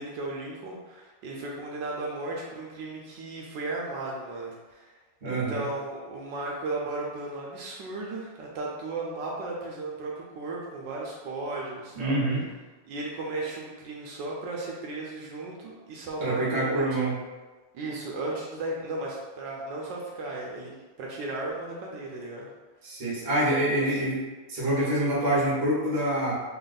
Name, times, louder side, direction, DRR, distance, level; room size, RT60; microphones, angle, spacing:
voice 1, 0.0-4.9 5.2-12.2 12.9-16.9 17.7-22.5 23.8-24.0, right 2 dB, 70° right, -2 dB, 1.1 m, -35 dB
voice 2, 5.2-5.6 11.9-12.4 16.2-17.2 22.8-24.2 24.5-26.4, right 1 dB, 40° right, -6 dB, 1.2 m, -26 dB
3.5 x 2.4 x 3.9 m, 1.3 s
omnidirectional pair, 2.3 m